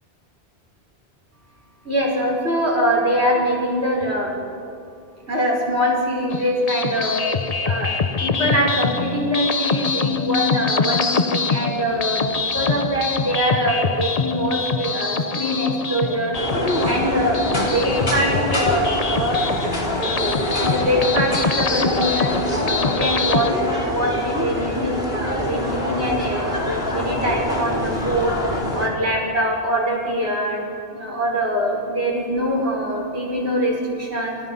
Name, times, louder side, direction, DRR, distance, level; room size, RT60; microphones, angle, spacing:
voice 1, 1.8-4.4 5.3-7.2 7.6-7.9 8.2-16.3 16.8-19.5 20.6-28.4 28.7-34.4, equal, 75° right, -1 dB, 5.7 m, -23 dB
sound 1, 6.3-23.5, left 5 dB, 40° left, 0.9 m, -25 dB
sound 2, 16.3-28.9, left 1 dB, 60° left, 3.8 m, -25 dB
29.5 x 28.5 x 5.6 m, 2.5 s
omnidirectional pair, 1.1 m